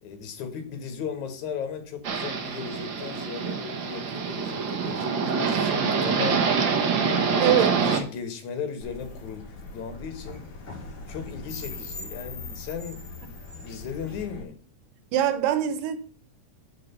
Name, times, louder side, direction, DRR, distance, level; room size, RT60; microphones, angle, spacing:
voice 1, 0.0-10.4 11.1-13.1 13.6-14.6, left 7 dB, 65° left, 2.7 m, -37 dB
sound 1, 2.0-8.0, right 5 dB, 65° right, 1.1 m, -25 dB
voice 2, 7.4-7.8 15.1-16.0, right 11 dB, 80° right, 2.6 m, -23 dB
sound 2, 8.8-14.4, left 3 dB, 45° left, 2.5 m, -40 dB
8.5 x 4.5 x 6.8 m
omnidirectional pair, 3.8 m